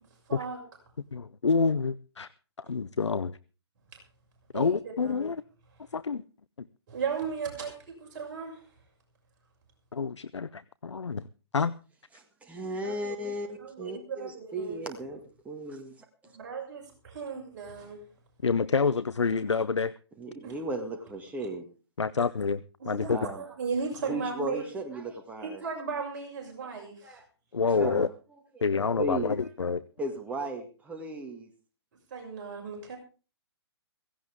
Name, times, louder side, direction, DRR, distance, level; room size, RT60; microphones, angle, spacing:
voice 1, 0.3-0.6 3.9-4.0 4.5-5.3 6.9-8.7 13.6-14.8 16.3-18.0 20.4-20.6 22.8-24.7 25.4-27.2 32.1-33.0, right 5 dB, 45° right, 6.3 m, -36 dB
voice 2, 1.1-2.3 2.6-3.4 4.5-5.4 5.9-6.2 9.9-11.2 11.5-11.7 18.4-19.9 22.0-23.3 27.5-28.1 28.6-29.8, left 5 dB, 90° left, 0.6 m, -28 dB
voice 3, 12.1-15.2 15.5-15.9 16.2-16.3 20.2-21.7 23.1-23.4 24.0-25.6 27.0-27.2 27.7-28.1 28.6-28.7 29.0-29.4 30.0-31.5, right 1 dB, 10° right, 1.9 m, -36 dB
16.5 x 16.5 x 3.6 m
figure-of-eight pair, 135°, 15 cm